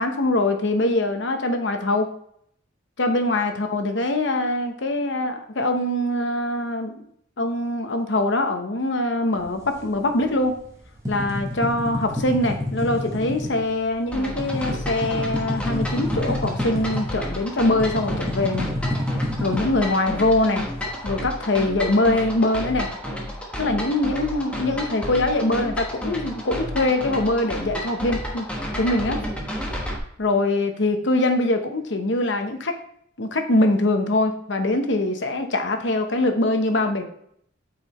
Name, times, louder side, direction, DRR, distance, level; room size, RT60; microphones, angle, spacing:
voice 1, 0.0-2.1 3.0-7.0 7.4-10.5 11.1-18.7 19.4-20.7 21.0-22.9 23.6-28.5 28.8-29.2 30.2-32.7 33.2-37.0, left 2 dB, 60° left, 6 dB, 0.9 m, -23 dB
sound 1, 9.4-10.6 10.9-17.2 17.5-20.5, left 1 dB, 15° right, 1.3 m, -28 dB
sound 2, 14.1-30.0, equal, 5° left, 1.1 m, -31 dB
8.4 x 4.8 x 3.1 m, 0.68 s
head